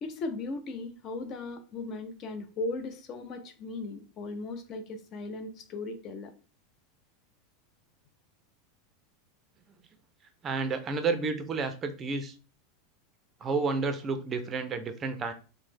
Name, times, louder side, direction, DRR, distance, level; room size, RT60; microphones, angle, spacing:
voice 1, 0.0-6.3, left 2 dB, 35° left, 8 dB, 0.5 m, -37 dB
voice 2, 10.4-12.3 13.4-15.3, right 4 dB, 25° right, 8 dB, 0.5 m, -30 dB
3.1 x 2.0 x 3.3 m, 0.35 s
supercardioid pair, 145°, 0 cm